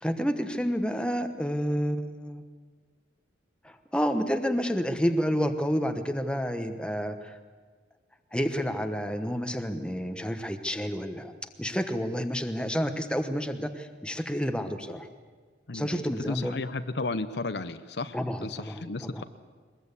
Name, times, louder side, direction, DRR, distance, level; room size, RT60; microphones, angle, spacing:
voice 1, 0.0-2.4 3.6-7.4 8.3-15.1 15.7-16.5 18.1-19.2, equal, 5° left, 7 dB, 1.1 m, -30 dB
voice 2, 15.7-19.2, left 3 dB, 65° left, 11 dB, 0.9 m, -34 dB
22.0 x 21.0 x 8.3 m, 1.5 s
head